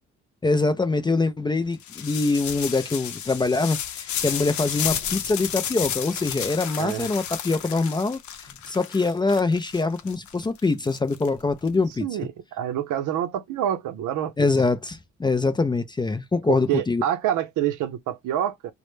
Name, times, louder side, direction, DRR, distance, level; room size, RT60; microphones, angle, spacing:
voice 1, 0.4-8.2 8.7-12.1 14.4-17.0, left 3 dB, 15° left, 0.3 m, -24 dB
sound 1, 1.8-11.7, left 9 dB, 75° left, 0.6 m, -32 dB
voice 2, 11.8-14.3 16.5-18.7, right 10 dB, 80° right, 0.6 m, -27 dB
2.1 x 2.0 x 3.0 m
cardioid pair, 90°, 30 cm